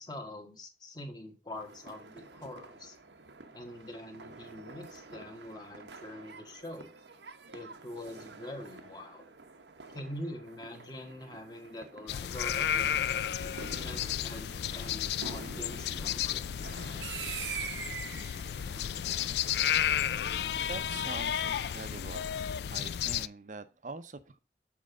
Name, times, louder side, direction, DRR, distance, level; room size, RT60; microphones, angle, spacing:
voice 1, 0.0-3.0 3.5-6.9 7.5-9.2 9.9-13.0 13.3-16.4, left 1 dB, 25° left, 4 dB, 1.3 m, -44 dB
sound 1, 1.5-21.1, right 5 dB, 85° right, 1.0 m, -47 dB
sound 2, 12.1-23.3, left 9 dB, 70° left, 0.3 m, -32 dB
sound 3, 14.4-20.6, equal, 55° left, 1.4 m, -59 dB
voice 2, 20.7-22.3 22.7-24.4, right 3 dB, 45° right, 12 dB, 0.7 m, -44 dB
7.6 x 4.6 x 5.0 m, 0.31 s
head